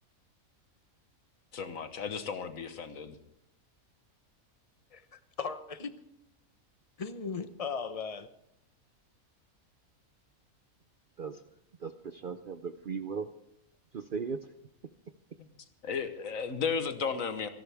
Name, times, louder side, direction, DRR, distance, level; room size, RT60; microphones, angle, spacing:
voice 1, 1.5-3.1 15.4-15.5 15.8-17.5, left 6 dB, 70° left, 1.5 m, -34 dB
voice 2, 4.9-5.9 7.0-8.3, left 5 dB, 30° left, 0.8 m, -37 dB
voice 3, 11.8-13.3 13.9-14.4, right 5 dB, 50° right, 0.6 m, -37 dB
27.0 x 11.5 x 3.5 m
omnidirectional pair, 1.5 m